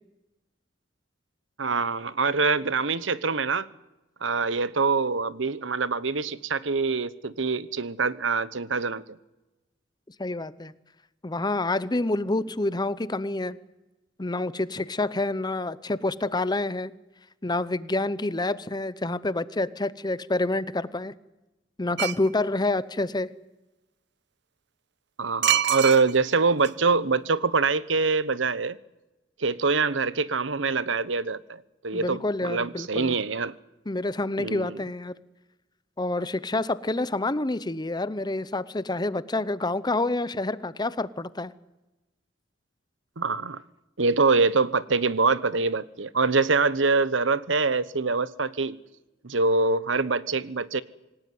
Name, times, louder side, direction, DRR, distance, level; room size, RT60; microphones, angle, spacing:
voice 1, 1.6-3.7 4.2-9.0 25.2-28.8 29.4-33.5 34.4-34.8 43.2-43.6 44.0-48.8 49.2-50.8, right 4 dB, 85° right, 17 dB, 1.1 m, -24 dB
voice 2, 10.2-10.7 11.2-13.6 14.2-16.9 17.4-21.1 21.8-23.3 31.9-33.2 33.9-35.1 36.0-41.5, left 2 dB, 20° left, 16 dB, 0.8 m, -28 dB
sound 1, 22.0-22.3 25.4-26.4 26.6-26.7, right 10 dB, 65° right, 1.0 m, -24 dB
26.5 x 17.5 x 9.5 m, 1.0 s
head